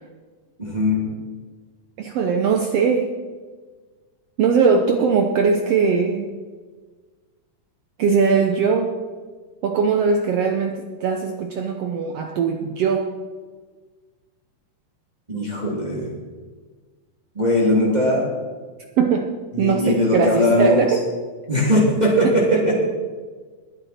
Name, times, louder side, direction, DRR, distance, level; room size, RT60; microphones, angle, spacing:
voice 1, 0.6-1.1 15.3-16.1 17.3-18.2 19.5-20.8 21.5-22.7, left 1 dB, 15° right, -4 dB, 2.4 m, -19 dB
voice 2, 2.0-3.1 4.4-6.3 8.0-8.9 9.6-13.1 19.0-19.3 19.6-21.0 22.2-22.3, right 5 dB, 75° right, 4 dB, 1.4 m, -20 dB
21.0 x 8.0 x 4.3 m, 1.4 s
omnidirectional pair, 3.8 m